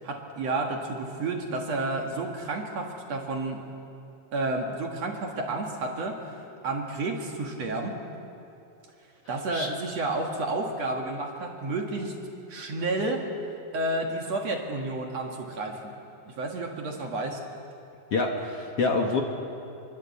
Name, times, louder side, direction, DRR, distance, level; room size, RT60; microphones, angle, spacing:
voice 1, 0.0-3.6 4.3-6.4 6.6-8.0 9.3-12.2 12.5-13.3 13.7-15.9 16.3-17.4, right 2 dB, 50° right, 1 dB, 2.7 m, -31 dB
voice 2, 18.1-19.2, left 3 dB, 50° left, 1 dB, 2.1 m, -26 dB
25.5 x 22.5 x 8.5 m, 2.7 s
omnidirectional pair, 4.1 m